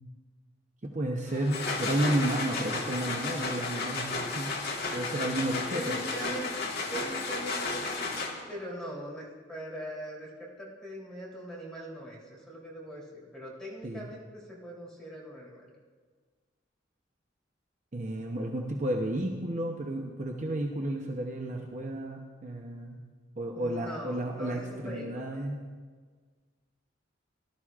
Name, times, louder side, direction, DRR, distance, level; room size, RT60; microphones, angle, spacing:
voice 1, 0.9-4.5 4.9-5.9 13.8-14.1 17.9-23.0 23.4-25.6, right 1 dB, 40° right, 1 dB, 0.9 m, -32 dB
sound 1, 1.3-8.6, left 3 dB, 55° left, 1.6 m, -33 dB
voice 2, 5.7-6.5 6.9-15.7 23.5-25.4, equal, 5° left, -6 dB, 3.3 m, -41 dB
18.5 x 12.0 x 2.5 m, 1.5 s
head